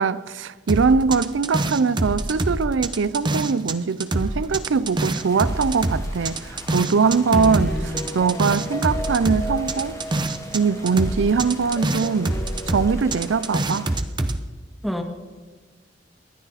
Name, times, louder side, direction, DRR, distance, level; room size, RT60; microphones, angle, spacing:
voice 1, 0.0-10.0 10.5-13.9, right 5 dB, 85° right, 0.5 m, -22 dB
sound 1, 0.7-3.7 4.0-10.6 10.9-14.4, right 2 dB, 25° right, 0.8 m, -25 dB
sound 2, 4.1-12.6, right 1 dB, 45° right, 3.3 m, -44 dB
sound 3, 5.2-14.0, equal, 15° left, 1.1 m, -38 dB
voice 2, 7.3-8.1 14.8-15.0, equal, ahead, 1.7 m, -28 dB
28.5 x 11.5 x 4.2 m
head